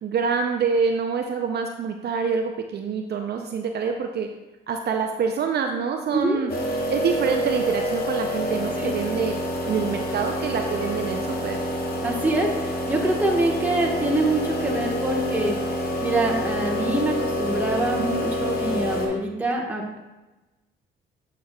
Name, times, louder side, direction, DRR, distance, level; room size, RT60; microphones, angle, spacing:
voice 1, 0.0-4.3 4.7-6.5 6.9-9.4 9.6-11.6 18.0-18.3, right 5 dB, 55° right, 4 dB, 0.6 m, -26 dB
sound 1, 6.5-19.1, equal, 50° left, 1.2 m, -27 dB
voice 2, 12.0-15.5 16.0-20.0, right 1 dB, 10° right, -2 dB, 1.3 m, -25 dB
8.3 x 5.7 x 2.3 m, 1.1 s
cardioid pair, 90°, 20 cm